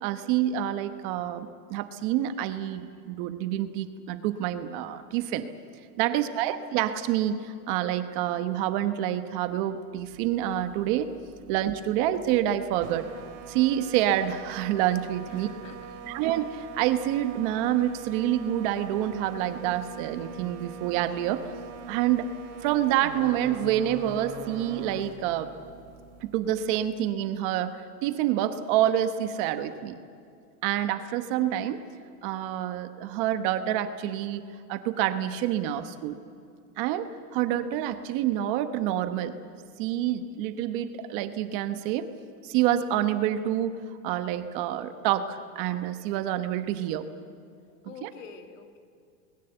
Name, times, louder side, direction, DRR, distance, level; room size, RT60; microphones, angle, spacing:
voice 1, 0.0-5.5 6.0-11.1 11.5-13.1 13.5-15.5 16.1-21.4 21.9-22.3 22.6-25.5 26.2-29.9 30.6-31.8 32.2-34.4 34.7-36.2 36.8-39.3 39.8-42.1 42.4-43.8 44.0-47.1 48.0-48.1, right 12 dB, 35° right, 10 dB, 1.1 m, -27 dB
voice 2, 6.0-6.4 15.3-16.2 47.8-48.8, left 6 dB, 50° left, 6 dB, 2.5 m, -48 dB
sound 1, 9.9-27.1, right 5 dB, 50° right, 3.0 m, -44 dB
29.5 x 21.0 x 8.0 m, 2.3 s
supercardioid pair, 160°, 46 cm